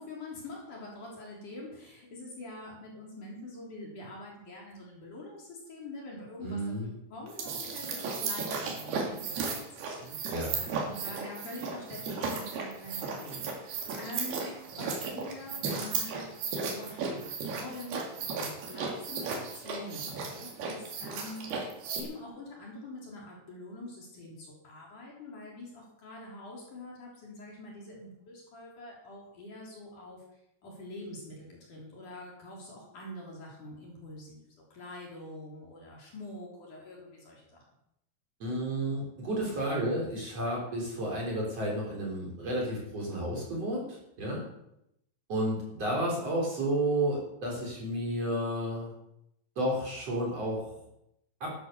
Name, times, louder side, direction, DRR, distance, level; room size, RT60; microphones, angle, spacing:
voice 1, 0.0-6.7 7.1-16.3 16.7-30.2 30.6-37.6, left 2 dB, 45° left, -3 dB, 4.7 m, -45 dB
voice 2, 6.4-6.9 10.3-10.6 38.4-44.4 45.3-48.9 49.6-50.8 51.4-51.5, right 1 dB, 35° right, -3 dB, 4.4 m, -31 dB
sound 1, 7.3-22.0, right 5 dB, 65° right, 4.2 m, -35 dB
12.5 x 11.0 x 6.8 m, 0.81 s
omnidirectional pair, 5.1 m